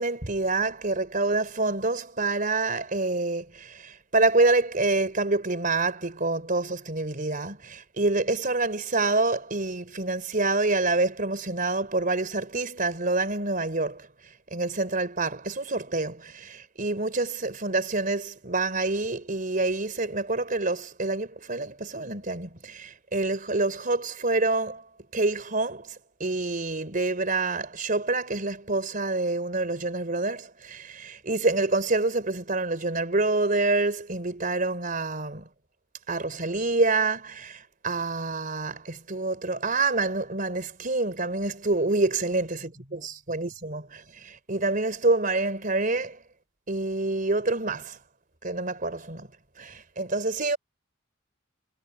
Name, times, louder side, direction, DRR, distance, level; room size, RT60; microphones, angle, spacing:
voice 1, 0.0-14.1 14.5-24.8 25.1-26.0 26.2-35.5 36.1-46.2 46.7-48.0 48.4-49.3 49.6-50.6, right 3 dB, 45° right, 3.8 m, -27 dB
head